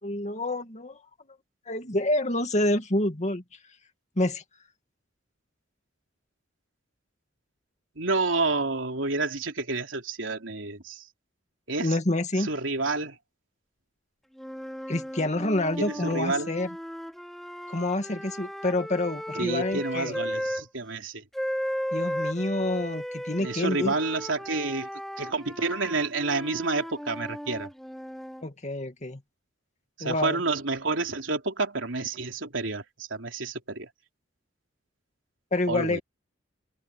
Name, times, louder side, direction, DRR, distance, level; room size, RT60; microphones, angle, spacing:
voice 1, 0.0-1.0 1.7-3.4 4.2-4.4 11.8-12.5 14.9-16.7 17.7-20.2 21.9-23.9 28.4-29.2 30.0-30.4 35.5-36.0, left 1 dB, 40° left, 2.3 m, -27 dB
voice 2, 7.9-11.1 11.7-12.0 12.4-13.2 15.8-16.5 19.3-21.2 23.4-24.9 25.2-27.7 30.0-33.9 35.7-36.0, right 3 dB, 90° right, 3.5 m, -29 dB
sound 1, 14.4-20.6 21.3-28.4, equal, ahead, 3.0 m, -35 dB
head